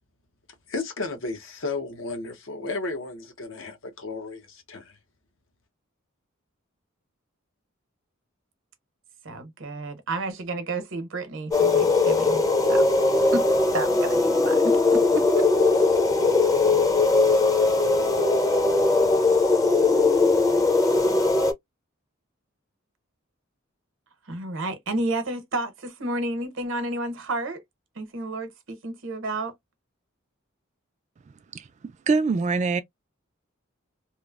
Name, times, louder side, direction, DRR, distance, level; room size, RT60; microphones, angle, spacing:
voice 1, 0.7-4.9, left 3 dB, 70° left, 0.8 m, -33 dB
voice 2, 9.2-12.4 12.7-12.9 13.3-15.5 24.3-27.6 28.0-29.5, right 2 dB, 65° right, 0.8 m, -31 dB
sound 1, 11.5-21.5, left 3 dB, 15° left, 0.6 m, -20 dB
voice 3, 32.1-32.8, right 4 dB, 35° right, 0.3 m, -23 dB
3.0 x 2.0 x 2.3 m
head